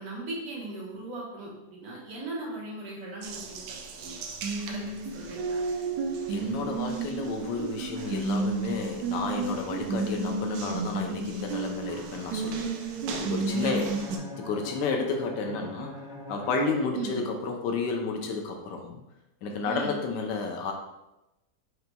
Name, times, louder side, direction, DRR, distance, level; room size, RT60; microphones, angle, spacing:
voice 1, 0.0-3.6 3.9-4.2 4.7-4.8 5.1-5.6 13.5-13.7 16.9-17.2 19.6-20.0, right 2 dB, 60° right, -4 dB, 1.5 m, -38 dB
Water tap faucet, 3.2-14.2, right 4 dB, 80° right, 1.2 m, -32 dB
voice 2, 6.3-12.7 13.1-13.9 14.3-15.9 16.3-19.0 19.4-20.7, left 4 dB, 80° left, 2 dB, 1.3 m, -31 dB
Bowed string instrument, 13.5-17.6, left 2 dB, 50° left, 1.0 m, -43 dB
6.5 x 2.9 x 2.2 m, 0.94 s
omnidirectional pair, 1.9 m